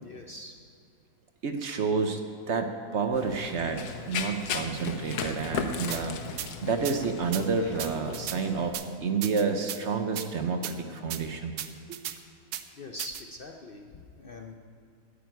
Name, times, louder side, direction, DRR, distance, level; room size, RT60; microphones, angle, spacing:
voice 1, 0.0-0.5 11.2-11.3 12.1-12.2 12.8-14.5, left 1 dB, 50° left, 3 dB, 0.7 m, -43 dB
voice 2, 1.4-6.2 6.6-11.6 11.9-12.0, right 5 dB, 55° right, 6 dB, 1.0 m, -29 dB
Run, 3.1-8.7, left 5 dB, 90° left, 1.4 m, -36 dB
sound 1, 5.9-6.0 6.4-6.5 6.8-7.0 7.3-7.4 7.8-8.4 8.7-8.8 9.2-9.8 10.2-10.3 10.6-10.7 11.1-11.2 11.6-12.2 12.5-12.6 13.0-13.2, right 11 dB, 85° right, 1.3 m, -35 dB
10.5 x 9.3 x 9.1 m, 2.4 s
omnidirectional pair, 1.6 m